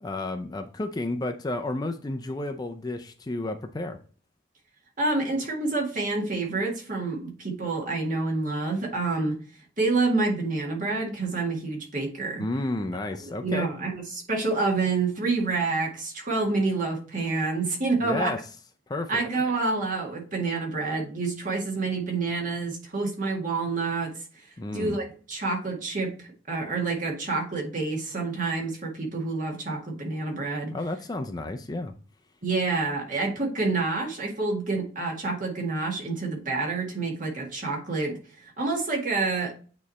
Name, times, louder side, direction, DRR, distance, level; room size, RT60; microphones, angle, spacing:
voice 1, 0.0-4.0 12.4-13.7 18.0-18.4 18.9-19.2 24.6-25.0 30.7-31.9, left 2 dB, 20° left, 6 dB, 0.5 m, -31 dB
voice 2, 5.0-9.4 9.8-12.5 13.2-18.3 19.1-24.4 24.7-30.7 32.4-39.5, right 3 dB, 45° right, -1 dB, 1.9 m, -28 dB
8.6 x 3.1 x 4.1 m, 0.39 s
head